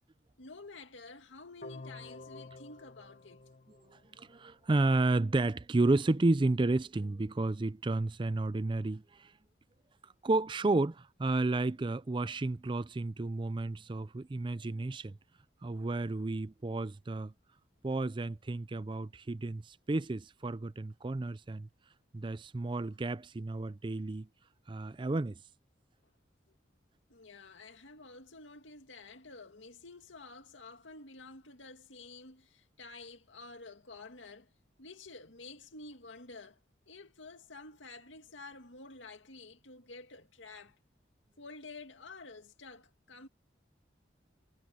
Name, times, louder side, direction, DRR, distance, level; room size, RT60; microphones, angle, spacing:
voice 1, 0.4-3.4 26.5-26.6 27.1-34.5 34.8-36.6 36.9-40.8 41.4-43.3, left 3 dB, 85° left, 2.3 m, -50 dB
sound 1, 1.6-4.6, left 3 dB, 50° left, 1.0 m, -50 dB
voice 2, 3.9-9.3 10.2-15.1 15.6-17.3 17.8-21.7 22.1-24.3 24.7-25.4, right 2 dB, 25° right, 0.4 m, -32 dB
head